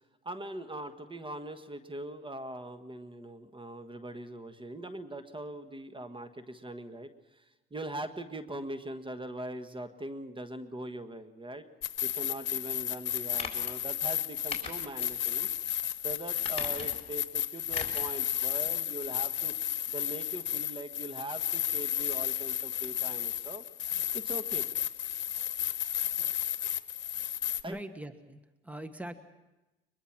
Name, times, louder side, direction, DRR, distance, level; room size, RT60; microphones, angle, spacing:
voice 1, 0.2-11.6 12.0-15.8 16.0-19.5 19.9-23.6 24.1-24.7 27.6-27.8, right 1 dB, 25° right, 8 dB, 1.4 m, -41 dB
sound 1, 11.8-27.6, left 11 dB, 70° left, 1.0 m, -33 dB
sound 2, 13.3-13.7 14.5-15.2 15.5-15.6 16.4-17.1 17.7-18.1 18.4-18.5, left 5 dB, 30° left, 4.3 m, -40 dB
voice 2, 27.7-29.1, right 1 dB, 5° right, 9 dB, 1.3 m, -42 dB
22.5 x 22.0 x 6.0 m, 1.0 s
cardioid pair, 90°, 20 cm